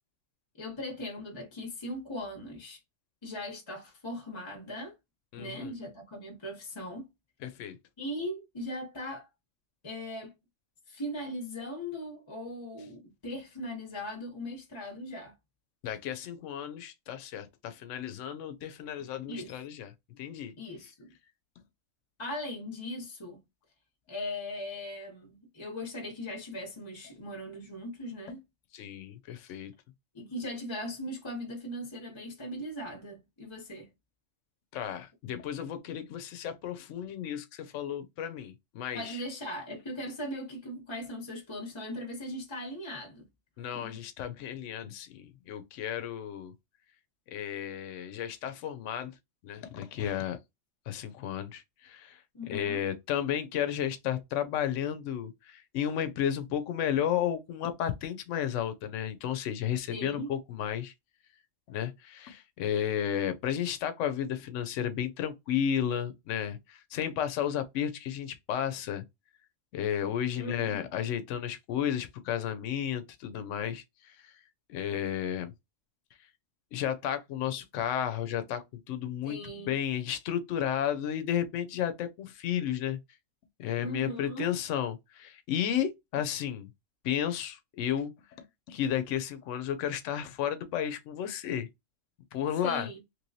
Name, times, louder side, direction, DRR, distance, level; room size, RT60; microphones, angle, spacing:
voice 1, 0.6-2.8 3.2-4.9 5.4-7.1 8.0-9.3 9.8-10.3 10.9-15.3 19.3-19.5 20.6-21.1 22.2-23.4 24.1-28.4 30.1-33.9 38.9-43.2 43.7-44.0 52.3-52.8 59.9-60.3 70.4-70.9 79.2-79.8 83.8-84.6 92.6-93.0, left 1 dB, 25° left, 0.8 m, -39 dB
voice 2, 5.3-5.7 7.4-7.8 15.8-20.5 28.7-29.7 34.7-39.2 43.6-46.5 47.3-49.1 49.4-50.4 50.9-52.2 52.5-60.9 61.7-69.0 69.7-74.4 74.7-75.5 76.7-83.0 83.6-86.7 87.0-88.1 88.7-91.7 92.3-92.9, left 9 dB, 75° left, 0.9 m, -33 dB
3.1 x 3.0 x 2.6 m
omnidirectional pair, 1.3 m